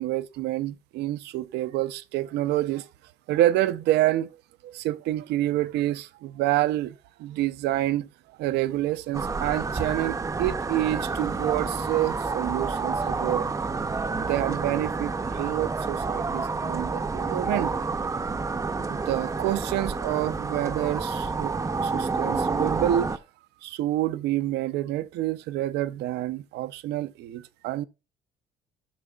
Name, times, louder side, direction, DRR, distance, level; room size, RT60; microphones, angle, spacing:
voice 1, 0.0-2.9 3.3-4.3 4.6-8.1 8.4-13.5 14.1-17.9 18.9-21.5 21.8-23.1 23.6-27.8, right 14 dB, 80° right, 0.5 m, -28 dB
London City Air Tone, 9.1-23.2, right 4 dB, 20° right, 0.6 m, -29 dB
12.5 x 6.3 x 2.3 m
cardioid pair, 110°, 17 cm